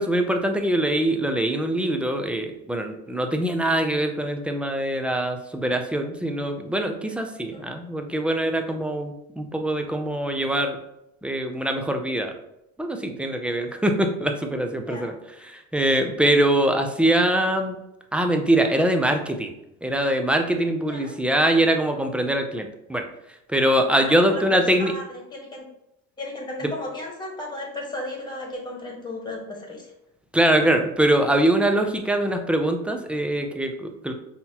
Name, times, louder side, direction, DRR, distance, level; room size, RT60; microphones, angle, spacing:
voice 1, 0.0-10.8 11.2-12.3 12.8-15.1 15.5-17.8 18.1-19.5 19.8-23.0 23.5-24.9 30.3-34.1, right 1 dB, 5° right, 5 dB, 0.3 m, -23 dB
voice 2, 24.0-24.4 24.8-25.0 25.3-25.6 26.2-29.9, left 2 dB, 15° left, 0 dB, 1.2 m, -35 dB
5.5 x 2.8 x 2.8 m, 0.84 s
cardioid pair, 125°, 32 cm